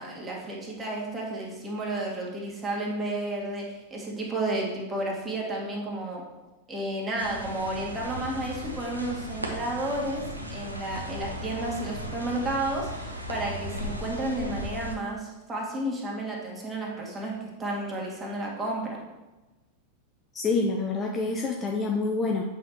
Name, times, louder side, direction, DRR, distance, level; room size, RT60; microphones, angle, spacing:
voice 1, 0.0-6.2 6.7-10.2 10.5-19.0, right 1 dB, 15° right, -2 dB, 1.8 m, -32 dB
sound 1, 7.2-14.9, equal, 85° right, 0.9 m, -36 dB
voice 2, 20.3-22.4, left 3 dB, 20° left, 1 dB, 0.6 m, -27 dB
8.3 x 5.6 x 3.0 m, 1.1 s
figure-of-eight pair, 90°, 0 cm